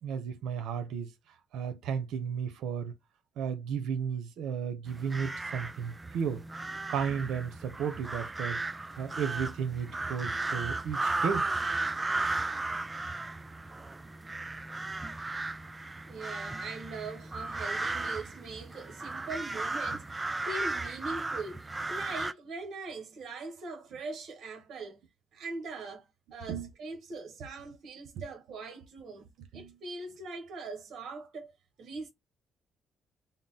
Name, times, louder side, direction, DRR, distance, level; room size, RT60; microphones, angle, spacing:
voice 1, 0.0-1.1 1.5-2.9 3.4-6.4 6.9-8.6 9.0-11.5 26.5-26.7 28.1-28.2 29.5-29.8, right 7 dB, 80° right, 0.7 m, -34 dB
sound 1, 4.9-22.3, right 2 dB, 20° right, 0.3 m, -35 dB
voice 2, 16.1-25.0 25.3-31.5 31.8-32.1, right 3 dB, 65° right, 1.1 m, -41 dB
3.6 x 2.0 x 4.0 m
cardioid pair, 90°, 0 cm